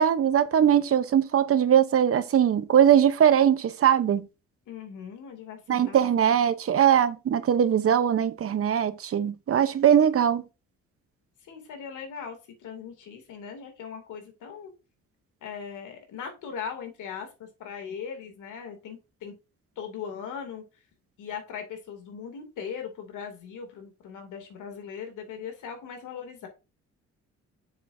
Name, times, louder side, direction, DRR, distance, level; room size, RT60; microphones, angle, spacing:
voice 1, 0.0-4.3 5.7-10.4, right 9 dB, 50° right, 0.8 m, -21 dB
voice 2, 4.7-6.2 11.4-14.7 15.4-19.3 19.8-20.6 21.2-26.5, left 7 dB, 85° left, 2.6 m, -39 dB
7.2 x 6.8 x 2.6 m
cardioid pair, 90°, 30 cm